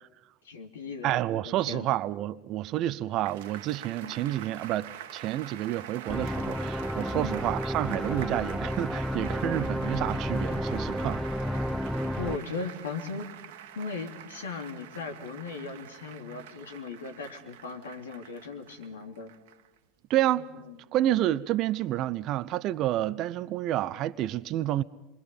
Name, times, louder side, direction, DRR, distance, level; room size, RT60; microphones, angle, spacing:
voice 1, 0.4-1.2 1.4-1.9 4.0-4.2 7.1-7.4 12.2-13.3 13.7-19.3 20.5-20.8, left 4 dB, 80° left, 3.0 m, -38 dB
voice 2, 1.0-11.2 20.1-20.4 20.9-24.8, right 13 dB, 50° right, 0.7 m, -29 dB
sound 1, 3.2-19.8 20.2-20.3, right 10 dB, 70° right, 1.5 m, -46 dB
sound 2, 6.1-12.4, equal, ahead, 0.8 m, -31 dB
27.0 x 23.5 x 5.6 m
hypercardioid pair, 80°, 0 cm